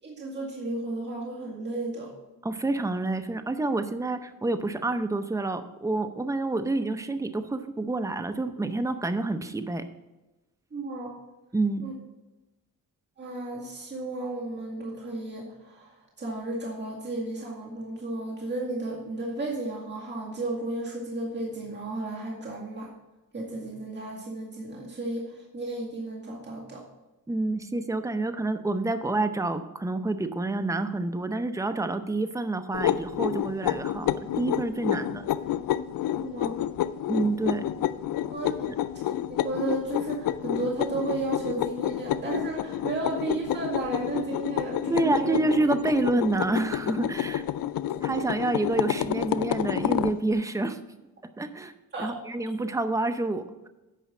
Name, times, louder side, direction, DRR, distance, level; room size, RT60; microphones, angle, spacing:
voice 1, 0.0-2.1 10.7-11.1 11.8-11.9 13.2-22.9 23.3-26.8 36.2-36.6 38.3-38.5 39.3-45.4 51.9-52.1, right 2 dB, 30° right, -4 dB, 2.2 m, -33 dB
voice 2, 2.4-9.8 11.5-11.8 27.3-35.2 37.1-37.6 38.6-38.8 44.9-47.4 48.0-50.8 51.4-51.7 52.0-53.7, right 2 dB, 10° right, 9 dB, 0.7 m, -28 dB
sound 1, 32.7-50.2, left 11 dB, 75° left, 0.5 m, -29 dB
9.2 x 5.4 x 6.0 m, 1.0 s
cardioid pair, 100°, 34 cm